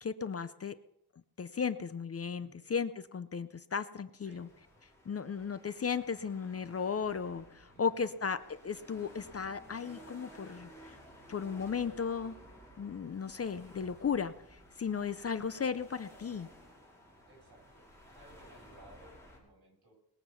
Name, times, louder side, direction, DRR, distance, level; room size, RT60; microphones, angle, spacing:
voice 1, 0.0-0.7 1.4-4.5 5.1-10.7 11.3-12.3 12.8-14.3 14.8-16.5, left 6 dB, 35° left, 13 dB, 0.6 m, -35 dB
sound 1, 4.2-19.4, equal, 5° left, 5.2 m, -55 dB
voice 2, 7.7-8.1 15.3-15.4 17.3-19.9, right 1 dB, 65° right, -2 dB, 7.9 m, -59 dB
20.5 x 7.6 x 7.0 m, 0.79 s
wide cardioid pair, 140°, 40 cm